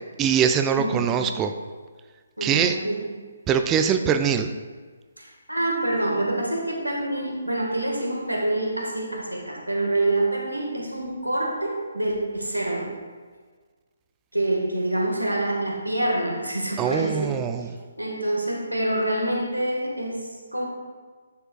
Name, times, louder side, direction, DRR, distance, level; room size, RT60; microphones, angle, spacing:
voice 1, 0.2-1.5 2.4-2.8 3.5-4.5 16.8-17.7, right 7 dB, 15° right, 7 dB, 0.3 m, -22 dB
voice 2, 0.7-1.2 2.4-3.0 5.2-12.9 14.3-17.4 18.0-20.7, right 1 dB, 90° right, -1 dB, 1.7 m, -26 dB
10.0 x 6.8 x 2.4 m, 1.5 s
figure-of-eight pair, 140°, 0 cm